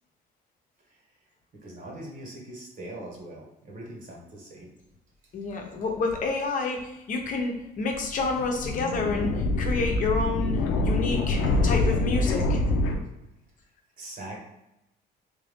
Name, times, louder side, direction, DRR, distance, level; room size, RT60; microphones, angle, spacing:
voice 1, 1.6-4.7 14.0-14.4, right 1 dB, 55° right, -2 dB, 1.4 m, -41 dB
voice 2, 5.3-12.6, left 3 dB, 50° left, 1 dB, 0.8 m, -29 dB
sound 1, 8.0-13.0, left 2 dB, 80° left, 0.6 m, -25 dB
3.5 x 2.6 x 3.5 m, 0.91 s
cardioid pair, 110°, 17 cm